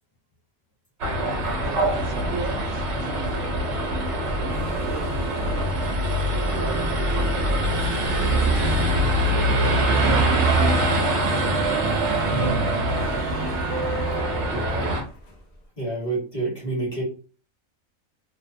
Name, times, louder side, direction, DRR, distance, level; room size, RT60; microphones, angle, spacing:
sound 1, 1.0-15.0, right 1 dB, 60° right, 0.9 m, -23 dB
voice 1, 1.6-3.7 4.3-5.3 5.8-7.0 8.3-8.6 9.6-10.9 11.3-12.0 12.3-13.2, right 4 dB, 80° right, 1 dB, 1.0 m, -36 dB
sound 2, 3.3-6.1 6.4-15.5, left 1 dB, 50° left, 0.5 m, -40 dB
voice 2, 12.3-12.6 14.5-14.9 15.8-17.0, right 3 dB, 35° left, -4 dB, 1.2 m, -28 dB
2.7 x 2.1 x 2.5 m, 0.39 s
omnidirectional pair, 1.4 m